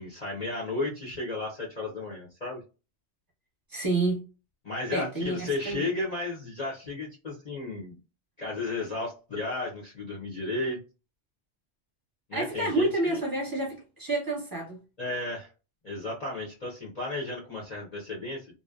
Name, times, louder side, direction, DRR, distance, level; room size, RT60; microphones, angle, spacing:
voice 1, 0.0-2.6 4.6-8.0 8.4-10.8 12.3-13.2 15.0-15.5 15.8-18.5, left 2 dB, 40° left, 0.7 m, -34 dB
voice 2, 3.7-4.2 4.9-5.9 12.3-14.8, right 2 dB, 20° right, 0.8 m, -29 dB
2.6 x 2.0 x 2.3 m
omnidirectional pair, 1.2 m